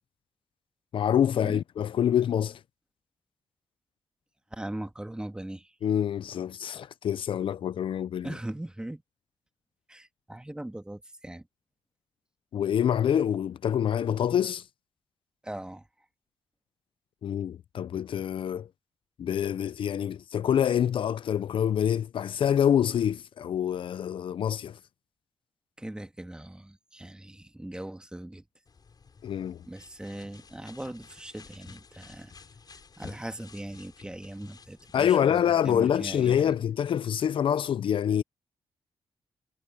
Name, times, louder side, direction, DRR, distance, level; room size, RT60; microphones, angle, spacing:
voice 1, 0.9-2.6 5.8-8.3 12.5-14.6 17.2-18.7 19.2-24.8 29.2-29.6 34.9-38.2, left 9 dB, 65° left, 0.5 m, -26 dB
voice 2, 4.5-5.8 8.2-9.0 9.9-11.5 15.4-15.9 25.8-28.4 29.7-32.4 33.0-36.6, right 1 dB, 10° right, 1.8 m, -40 dB
sound 1, 28.7-35.1, left 5 dB, 45° left, 6.3 m, -51 dB
cardioid pair, 85°, 9 cm